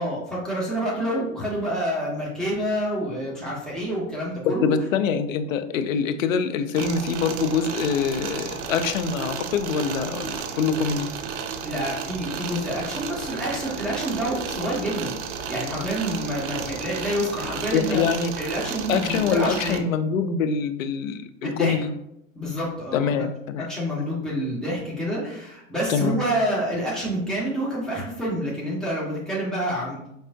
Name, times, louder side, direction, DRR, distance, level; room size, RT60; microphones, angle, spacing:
voice 1, 0.0-4.7 11.6-15.1 15.5-18.0 18.4-19.8 21.4-21.7 22.3-23.1 23.7-30.1, right 1 dB, ahead, -7 dB, 1.6 m, -28 dB
voice 2, 4.4-11.1 17.7-18.3 18.9-21.9 22.9-23.7 25.9-26.2, left 6 dB, 80° left, 10 dB, 0.6 m, -24 dB
sound 1, 6.7-19.8, right 6 dB, 65° right, 0.7 m, -33 dB
5.3 x 3.3 x 2.7 m, 0.80 s
hypercardioid pair, 105°, 39 cm